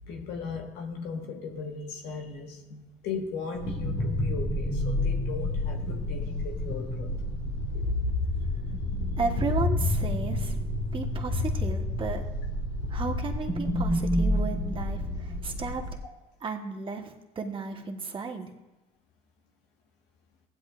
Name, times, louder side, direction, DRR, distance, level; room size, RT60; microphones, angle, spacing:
voice 1, 0.1-7.1, left 5 dB, 90° left, 1 dB, 1.6 m, -37 dB
sound 1, 3.6-16.0, left 1 dB, 70° left, 2.2 m, -29 dB
voice 2, 9.2-10.6 10.9-12.2 12.9-15.8 16.4-18.5, right 4 dB, 30° right, 2 dB, 1.3 m, -34 dB
15.5 x 9.9 x 2.5 m, 1.0 s
cardioid pair, 110°, 17 cm